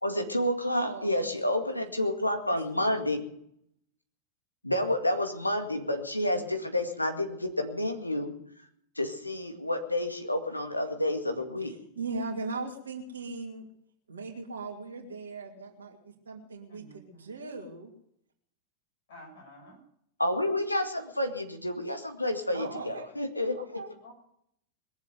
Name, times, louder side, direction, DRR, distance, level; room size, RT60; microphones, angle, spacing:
voice 1, 0.0-3.2 4.6-8.3 9.0-11.7 20.2-23.6, left 1 dB, 85° left, 6 dB, 1.9 m, -29 dB
voice 2, 0.6-1.4 1.7-1.9 2.7-3.0 11.6-13.6 14.1-17.9 22.5-23.1 23.5-23.9, right 3 dB, 70° right, 0 dB, 2.4 m, -39 dB
voice 3, 16.7-17.3 19.1-19.8 24.0-24.1, equal, 55° left, 0 dB, 6.4 m, -51 dB
21.5 x 7.4 x 8.1 m, 0.72 s
figure-of-eight pair, 90°, 0 cm